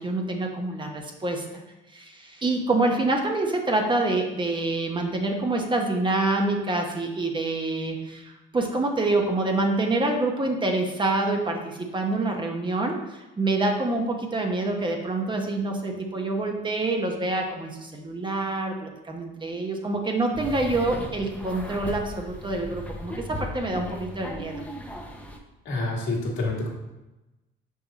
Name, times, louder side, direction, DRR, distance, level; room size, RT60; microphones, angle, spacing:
voice 1, 0.0-1.6 1.9-24.6, right 2 dB, 25° right, 2 dB, 0.9 m, -26 dB
sound 1, 20.3-25.4, left 1 dB, 5° left, 0.8 m, -37 dB
voice 2, 25.7-26.7, left 2 dB, 65° left, -1 dB, 1.7 m, -27 dB
5.5 x 5.0 x 4.0 m, 1.0 s
cardioid pair, 110°, 20 cm